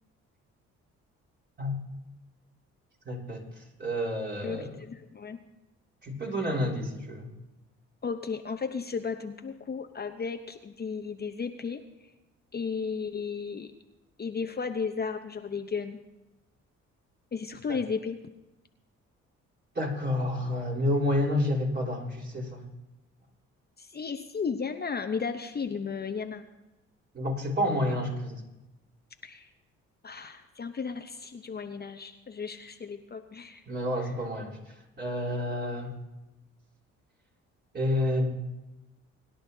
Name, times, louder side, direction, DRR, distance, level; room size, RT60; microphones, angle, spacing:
voice 1, 3.0-3.4 3.8-4.7 6.0-7.3 19.8-22.6 27.1-28.4 33.7-34.6 35.0-35.9 37.7-38.3, left 1 dB, 35° right, -3 dB, 3.7 m, -29 dB
voice 2, 4.4-5.4 8.0-11.8 12.5-13.7 14.2-16.0 17.3-18.2 23.8-26.5 29.2-29.5 30.0-33.6 34.0-34.1, left 5 dB, 30° left, 6 dB, 0.8 m, -34 dB
21.5 x 11.0 x 2.7 m, 1.0 s
supercardioid pair, 70°, 30 cm